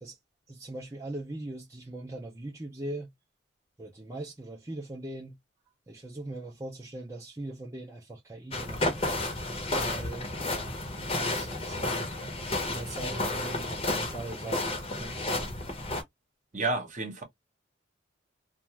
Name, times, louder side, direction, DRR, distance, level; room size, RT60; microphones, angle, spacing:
voice 1, 0.5-3.1 3.8-5.4 5.9-9.3 9.7-12.1 12.6-15.3, right 2 dB, 15° right, 0.5 m, -41 dB
sound 1, 8.5-16.0, left 2 dB, 30° left, 0.8 m, -32 dB
voice 2, 16.5-17.2, right 3 dB, 40° right, 0.9 m, -30 dB
2.5 x 2.2 x 2.9 m
head